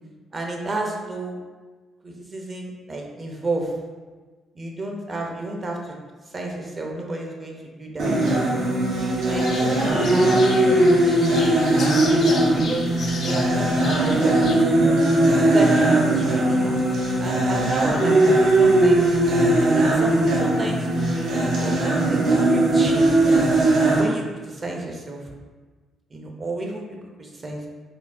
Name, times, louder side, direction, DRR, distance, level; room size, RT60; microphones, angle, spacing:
voice 1, 0.3-1.4 2.0-3.7 4.5-5.9 6.3-8.6 9.2-11.3 11.6-11.8 12.6-14.8 15.5-16.8 17.2-19.1 19.5-21.3 21.6-22.2 22.5-23.1 24.0-25.2 26.1-27.7, right 2 dB, 35° right, 1 dB, 0.7 m, -31 dB
sound 1, 8.0-24.0, right 1 dB, 80° right, 1.0 m, -19 dB
sound 2, 9.3-14.6, left 4 dB, 60° left, 0.4 m, -35 dB
4.4 x 2.7 x 2.6 m, 1.4 s
cardioid pair, 90°, 0 cm